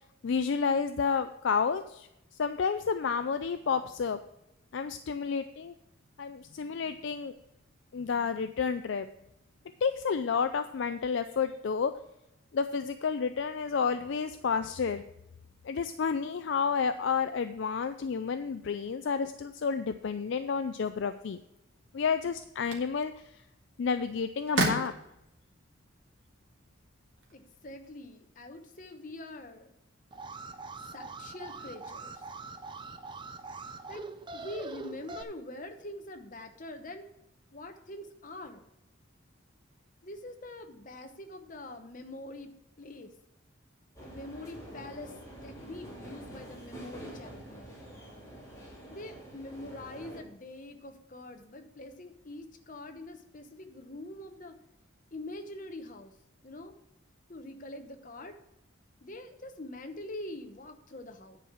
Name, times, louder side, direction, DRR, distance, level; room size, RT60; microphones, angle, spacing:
voice 1, 0.2-2.1 2.4-4.2 4.7-5.7 6.2-7.4 7.9-9.1 9.8-11.9 12.5-15.0 15.6-21.4 21.9-23.1 23.8-24.9, left 5 dB, 60° left, 9 dB, 0.4 m, -30 dB
sound 1, 21.7-27.9, right 2 dB, 65° right, 2.0 m, -38 dB
voice 2, 27.3-29.7 30.8-32.2 33.9-34.0 34.3-37.1 37.5-38.6 40.0-43.1 44.0-45.2 45.4-47.8 48.9-54.6 55.1-56.1 56.4-56.7 57.3-58.3 59.0-61.4, left 1 dB, 40° left, 6 dB, 0.9 m, -44 dB
Alarm, 30.1-35.2, right 3 dB, 20° right, 0.4 m, -43 dB
sound 2, 43.9-50.2, right 1 dB, 15° left, 2.6 m, -47 dB
10.0 x 4.7 x 7.3 m, 0.84 s
head